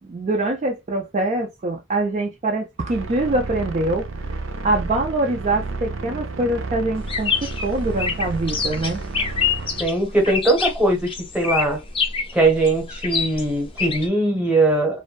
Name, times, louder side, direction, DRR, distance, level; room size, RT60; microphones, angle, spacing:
voice 1, 0.1-4.1 4.6-9.0, right 2 dB, 35° right, 0.4 m, -24 dB
sound 1, 2.9-9.9, right 3 dB, 85° right, 0.6 m, -31 dB
sound 2, 7.0-14.1, left 5 dB, 25° left, 0.5 m, -26 dB
voice 2, 9.8-11.1 11.3-11.8 12.3-15.0, right 2 dB, 5° right, 0.9 m, -20 dB
2.6 x 2.1 x 2.2 m
head